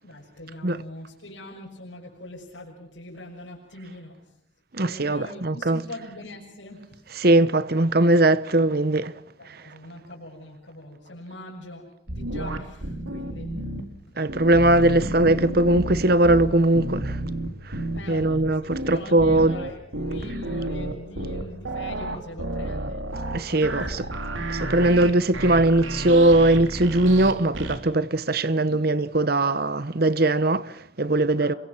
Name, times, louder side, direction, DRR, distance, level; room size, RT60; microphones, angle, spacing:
voice 1, 0.0-4.3 4.8-7.2 9.4-13.7 14.1-14.2 14.5-15.0 17.9-23.1 23.5-24.2 28.6-28.8 31.4-31.6, left 1 dB, 75° left, 6.4 m, -42 dB
voice 2, 4.7-5.8 7.2-9.1 9.5-9.6 14.2-17.2 17.6-17.8 18.1-19.6 23.3-24.0 24.5-31.5, right 2 dB, 50° right, 1.0 m, -20 dB
sound 1, 12.1-13.8 14.3-27.8, right 1 dB, 85° right, 3.3 m, -31 dB
29.5 x 23.5 x 6.0 m
head